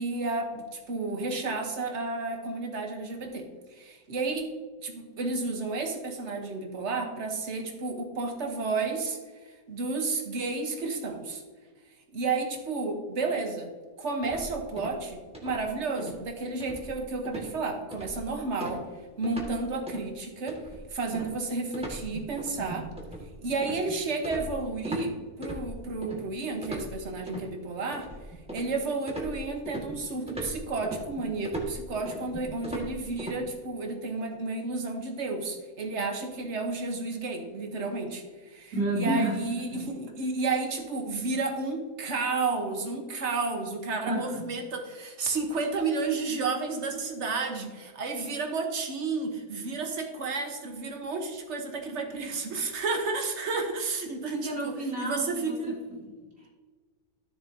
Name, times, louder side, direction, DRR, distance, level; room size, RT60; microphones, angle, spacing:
voice 1, 0.0-4.5 4.8-9.2 9.7-11.4 12.1-13.7 14.0-18.8 19.2-20.6 20.9-22.9 23.4-25.1 25.4-28.1 28.5-55.8, right 3 dB, 50° right, 3 dB, 1.5 m, -32 dB
sound 1, 14.2-15.1 15.3-15.7 16.0-16.2 16.6-17.0 17.3-17.5 17.9-18.3 18.6-19.6 19.9-20.1 20.5-25.1 25.4-26.2 26.6-27.5 27.9-28.8 29.1-33.4, right 1 dB, 5° right, 1.7 m, -38 dB
voice 2, 38.7-39.9 44.1-44.5 54.4-55.7 56.0-56.5, right 1 dB, 70° right, -5 dB, 3.0 m, -31 dB
13.0 x 6.9 x 2.8 m, 1.4 s
omnidirectional pair, 1.5 m